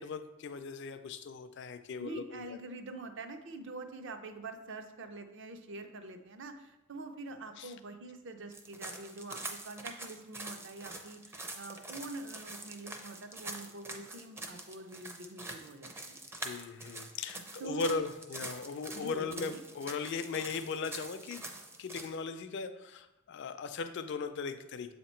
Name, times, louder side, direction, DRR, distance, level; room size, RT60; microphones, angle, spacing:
voice 1, 0.0-2.5 7.6-7.7 16.3-24.9, left 4 dB, 55° left, 10 dB, 0.4 m, -38 dB
voice 2, 2.0-16.2 17.6-18.0 18.9-19.6, right 3 dB, 60° right, 7 dB, 0.6 m, -45 dB
sound 1, 8.5-22.1, right 2 dB, 10° right, 0.4 m, -45 dB
7.6 x 2.9 x 4.3 m, 0.99 s
head